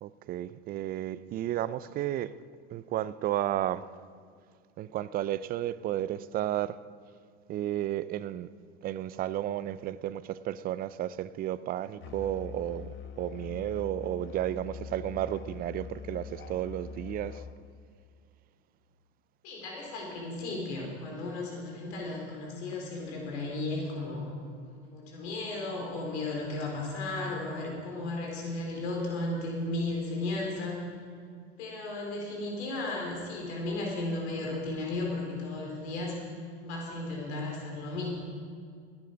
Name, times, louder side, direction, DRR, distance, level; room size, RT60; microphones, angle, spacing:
voice 1, 0.0-2.3 2.7-3.9 4.8-6.8 7.5-8.5 8.8-17.4, right 12 dB, 25° right, 0.4 m, -33 dB
Musical instrument, 12.0-17.6, left 6 dB, 35° left, 1.0 m, -43 dB
voice 2, 19.4-24.3 24.6-30.8 31.6-36.2 36.6-38.3, left 2 dB, 70° left, 4.0 m, -35 dB
17.0 x 9.7 x 5.2 m
hypercardioid pair, 110°, 35 cm